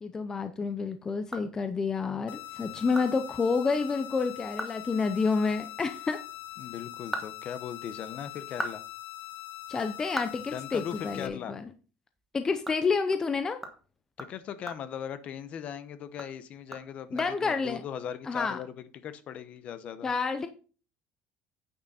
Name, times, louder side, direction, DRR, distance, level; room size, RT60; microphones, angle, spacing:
voice 1, 0.0-6.2 9.7-11.7 12.3-13.6 17.1-17.8 18.3-18.6 20.0-20.5, left 4 dB, 15° left, 9 dB, 0.6 m, -29 dB
sound 1, 0.9-2.1 2.5-2.6 2.9-3.1 3.4-3.5 4.0-4.1 4.4-4.8 5.1-5.2 6.7-8.0 8.4-11.3 11.6-11.8 12.1-15.7 16.1-17.7, right 1 dB, 5° right, 1.2 m, -41 dB
sound 2, 2.3-11.3, left 14 dB, 70° left, 1.0 m, -43 dB
voice 2, 6.6-8.8 10.5-11.5 14.2-20.1, left 8 dB, 40° left, 13 dB, 0.8 m, -39 dB
9.5 x 6.5 x 4.2 m, 0.37 s
cardioid pair, 170°, 3 cm